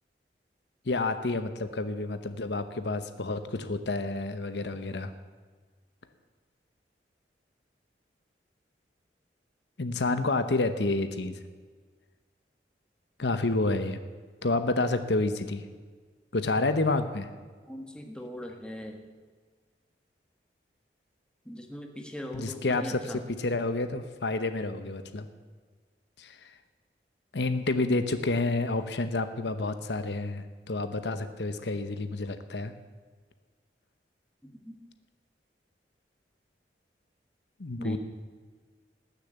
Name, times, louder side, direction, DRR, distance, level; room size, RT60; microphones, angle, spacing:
voice 1, 0.9-5.1 9.8-11.4 13.2-14.0 14.4-15.6 16.3-17.3 22.3-25.3 26.2-26.5 27.3-32.7 37.6-38.0, left 2 dB, 80° left, 10 dB, 0.9 m, -29 dB
voice 2, 17.7-19.0 21.4-23.2 34.4-34.8 37.8-38.0, left 1 dB, 5° left, 3 dB, 1.5 m, -40 dB
19.0 x 6.9 x 8.1 m, 1.5 s
head